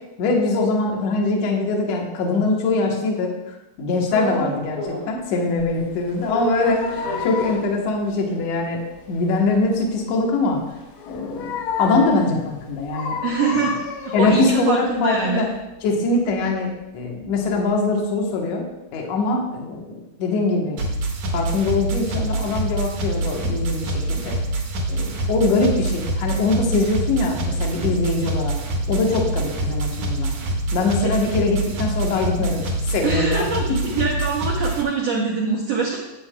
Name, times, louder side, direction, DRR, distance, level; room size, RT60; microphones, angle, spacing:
voice 1, 0.2-8.8 9.1-10.6 11.1-13.2 13.5-13.7 14.1-15.5 15.8-18.6 18.9-20.8 21.3-24.4 24.9-28.6 28.9-30.4 30.7-33.5, left 3 dB, 60° left, 0 dB, 1.9 m, -22 dB
sound 1, 4.1-5.3 5.6-8.2 8.6-8.7 8.8-13.3 13.7-17.7, right 1 dB, 30° left, 2.0 m, -35 dB
sound 2, 6.1-7.8 11.0-12.4 12.9-14.7 15.3-15.4, left 6 dB, 75° left, 2.2 m, -30 dB
voice 2, 13.2-13.8 14.0-15.5 31.0-31.1 33.0-36.0, right 5 dB, 85° right, -2 dB, 1.4 m, -24 dB
sound 3, 20.8-34.8, right 2 dB, 65° right, 1.7 m, -25 dB
11.5 x 8.6 x 2.3 m, 0.98 s
omnidirectional pair, 4.3 m